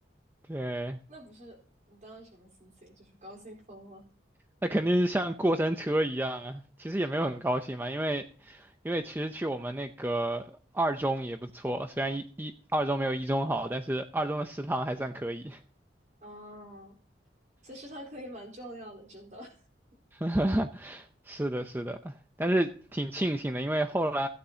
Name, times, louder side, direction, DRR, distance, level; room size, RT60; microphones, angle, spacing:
voice 1, 0.5-1.0 4.6-15.6 20.1-24.3, right 1 dB, 10° right, 0.6 m, -30 dB
voice 2, 1.1-4.1 7.0-7.3 16.2-17.0 17.6-19.6, equal, 45° right, 4.2 m, -47 dB
16.0 x 9.5 x 2.8 m
head